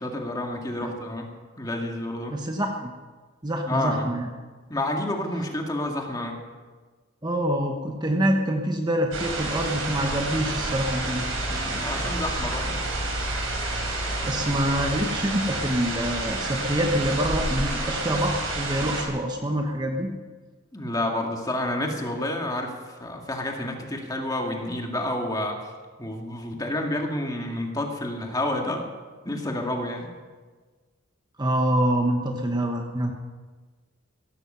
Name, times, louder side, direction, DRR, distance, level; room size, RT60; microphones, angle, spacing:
voice 1, 0.0-1.3 1.6-2.4 3.6-4.1 4.7-6.4 11.5-12.7 20.7-22.7 23.0-25.7 26.0-28.8 29.2-30.1, left 1 dB, 20° left, 2 dB, 2.0 m, -29 dB
voice 2, 2.3-2.9 3.4-4.3 7.2-11.2 13.9-20.1 31.4-33.1, equal, 20° right, 3 dB, 1.1 m, -26 dB
sound 1, 9.1-19.0, right 2 dB, 80° right, 5.0 m, -29 dB
16.5 x 15.0 x 5.6 m, 1.4 s
head